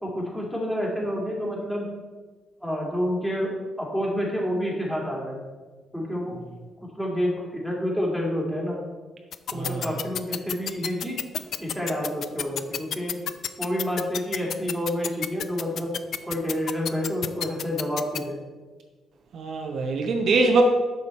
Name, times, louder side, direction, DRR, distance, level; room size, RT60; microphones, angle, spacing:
voice 1, 0.0-1.9 2.6-5.4 5.9-6.4 6.9-8.8 9.5-11.2 11.6-13.2 13.6-16.0 16.2-18.4, equal, 5° left, -3 dB, 2.5 m, -28 dB
sound 1, 9.3-18.2, left 9 dB, 65° left, 0.4 m, -29 dB
voice 2, 9.5-9.9 19.3-20.7, right 3 dB, 65° right, 3 dB, 0.9 m, -22 dB
7.2 x 6.3 x 4.3 m, 1.4 s
cardioid pair, 90°, 0 cm